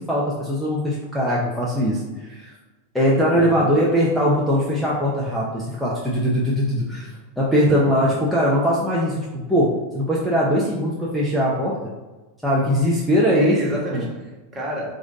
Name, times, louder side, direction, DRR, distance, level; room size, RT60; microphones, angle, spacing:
voice 1, 0.0-2.5 2.9-11.7 12.4-13.6 13.9-14.0, equal, ahead, -6 dB, 0.8 m, -21 dB
voice 2, 3.3-3.7 7.7-8.1 13.3-14.9, right 2 dB, 25° right, -2 dB, 1.5 m, -30 dB
4.8 x 2.6 x 4.0 m, 1.2 s
hypercardioid pair, 100°, 0 cm